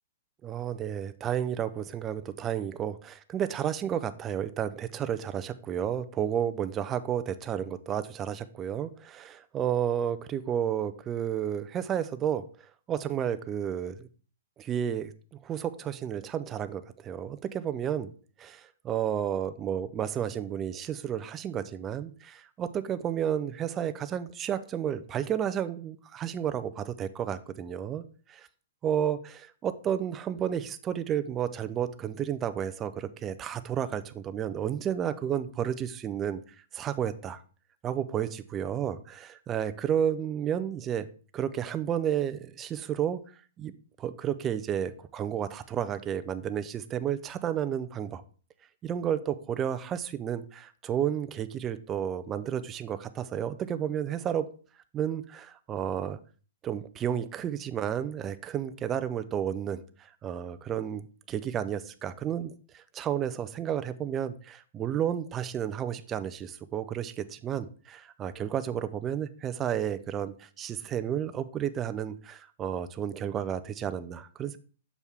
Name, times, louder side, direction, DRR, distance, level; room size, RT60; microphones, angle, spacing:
voice 1, 0.4-12.4 12.9-14.1 14.6-15.1 15.4-18.1 18.4-28.0 28.8-36.4 36.7-37.4 37.8-41.1 41.3-43.2 43.6-43.7 44.0-48.2 48.8-54.5 54.9-56.2 56.6-59.8 60.2-74.6, right 9 dB, 15° right, 12 dB, 0.3 m, -32 dB
6.9 x 4.6 x 3.4 m, 0.40 s
hypercardioid pair, 165°, 0 cm